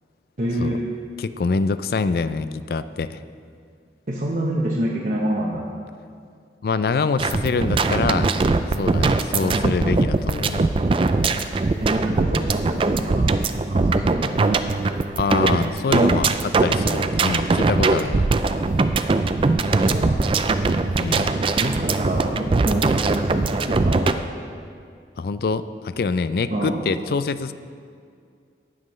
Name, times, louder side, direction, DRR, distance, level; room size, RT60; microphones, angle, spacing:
voice 1, 0.4-0.9 4.1-5.7 9.4-9.6 11.8-13.3 13.7-14.3 19.6-20.4 21.6-24.1 26.5-26.8, right 1 dB, 50° right, -4 dB, 0.9 m, -27 dB
voice 2, 1.2-3.2 6.6-8.3 8.8-10.7 15.2-18.3 21.0-21.4 25.2-27.5, left 4 dB, 55° left, 13 dB, 0.4 m, -25 dB
sound 1, 7.2-24.1, right 3 dB, 30° right, 0.3 m, -21 dB
19.0 x 7.5 x 3.2 m, 2.3 s
head